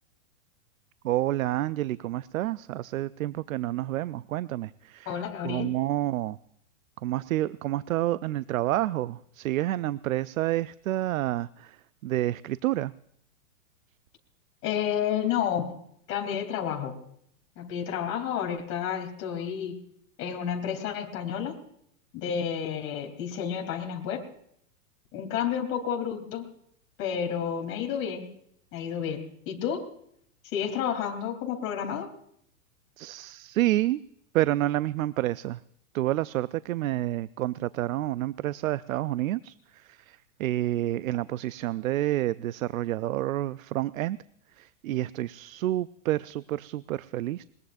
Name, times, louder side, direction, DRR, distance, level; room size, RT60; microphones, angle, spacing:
voice 1, 1.0-5.2 5.4-6.4 7.0-12.9 33.0-34.0 34.3-35.6 35.9-44.2 44.6-47.4, right 15 dB, 80° right, 17 dB, 0.6 m, -29 dB
voice 2, 5.0-5.7 14.6-15.8 16.1-17.0 17.6-19.8 20.2-21.6 22.1-24.2 25.1-26.5 27.0-28.3 28.7-29.9 30.5-32.1, left 8 dB, 30° left, 2 dB, 3.3 m, -30 dB
21.5 x 21.0 x 2.6 m, 0.71 s
hypercardioid pair, 145°, 41 cm